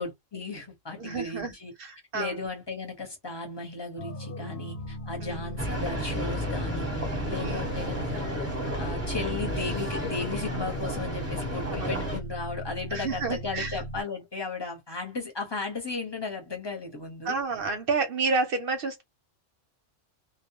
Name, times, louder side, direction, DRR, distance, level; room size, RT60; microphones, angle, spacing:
voice 1, 0.0-1.7 2.1-6.9 7.3-8.3 8.8-17.4, left 4 dB, 25° left, 0.7 m, -35 dB
voice 2, 1.0-1.5 1.8-2.4 5.2-5.5 7.4-7.7 11.7-11.9 12.9-13.8 17.2-19.0, right 4 dB, 55° right, 0.7 m, -30 dB
sound 1, 4.0-14.0, equal, 55° left, 0.8 m, -38 dB
sound 2, 5.6-12.2, equal, 15° right, 0.7 m, -32 dB
2.2 x 2.1 x 2.8 m
omnidirectional pair, 1.3 m